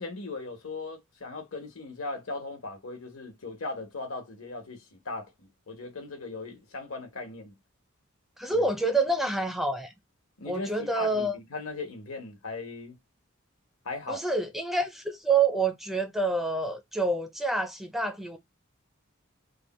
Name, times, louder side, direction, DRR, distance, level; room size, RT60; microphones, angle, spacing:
voice 1, 0.0-7.6 8.5-8.7 10.4-13.0 13.8-14.3, left 3 dB, 80° left, 1.2 m, -38 dB
voice 2, 8.4-9.9 10.5-11.3 14.1-18.4, right 3 dB, ahead, 0.4 m, -27 dB
3.4 x 2.2 x 4.1 m
head